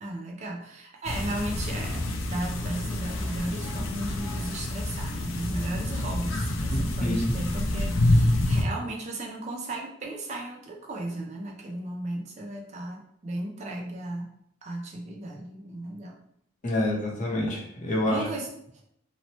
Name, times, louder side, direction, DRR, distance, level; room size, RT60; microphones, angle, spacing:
voice 1, 0.0-14.3 14.6-16.1 18.1-18.5 18.7-18.8, right 1 dB, 35° right, 0 dB, 0.4 m, -35 dB
sound 1, 1.0-8.6, left 1 dB, 90° left, 0.4 m, -27 dB
voice 2, 6.7-7.3 16.6-18.2, left 1 dB, 40° left, -2 dB, 0.7 m, -27 dB
2.9 x 2.0 x 2.8 m, 0.71 s
head